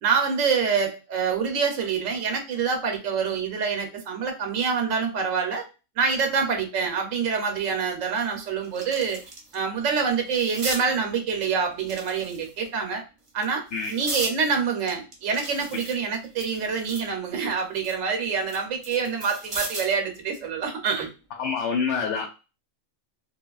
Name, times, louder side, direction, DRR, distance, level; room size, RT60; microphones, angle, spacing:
voice 1, 0.0-5.7 6.0-9.2 9.5-13.0 13.3-13.6 13.9-21.1, right 5 dB, 80° right, 3 dB, 1.0 m, -26 dB
sound 1, 7.5-7.6 8.1-9.6 9.9-10.8 11.8-12.7 13.3-14.4 14.9-17.1 17.5-20.0 21.4-21.6, right 2 dB, 30° right, 0.7 m, -36 dB
voice 2, 21.4-22.3, left 5 dB, 70° left, 2 dB, 0.8 m, -26 dB
2.9 x 2.3 x 2.3 m, 0.31 s
omnidirectional pair, 1.3 m